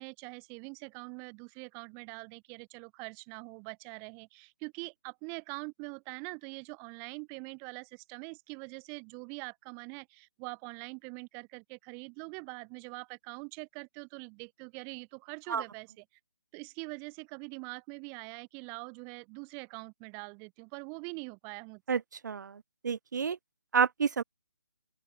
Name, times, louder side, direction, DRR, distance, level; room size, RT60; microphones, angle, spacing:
voice 1, 0.0-16.1 16.5-22.0, right 38 dB, 20° right, 5.6 m, -44 dB
voice 2, 22.8-23.4 23.7-24.2, right 6 dB, 60° right, 0.7 m, -28 dB
open air
figure-of-eight pair, 155°, 11 cm